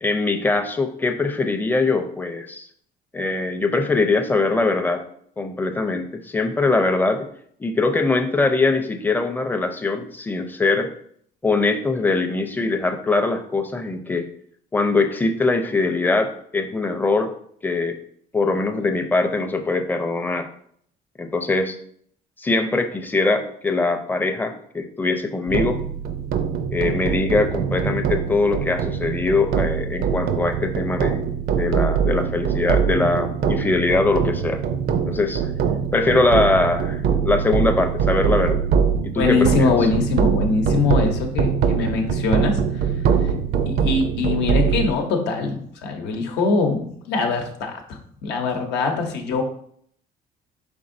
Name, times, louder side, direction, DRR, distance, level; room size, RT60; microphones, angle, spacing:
voice 1, 0.0-2.7 3.1-5.0 5.4-7.3 7.6-10.9 11.4-14.3 14.7-17.3 17.6-18.0 18.3-20.5 21.2-21.8 22.4-25.8 26.7-31.2 31.5-34.6 35.1-35.5 35.9-38.6 39.0-39.7, left 3 dB, 10° left, 6 dB, 0.5 m, -22 dB
sound 1, 25.5-44.9, right 7 dB, 65° right, 0.5 m, -23 dB
voice 2, 39.2-42.6 43.7-49.4, left 4 dB, 85° left, 3 dB, 0.8 m, -22 dB
5.2 x 3.6 x 2.6 m, 0.65 s
cardioid pair, 110°, 17 cm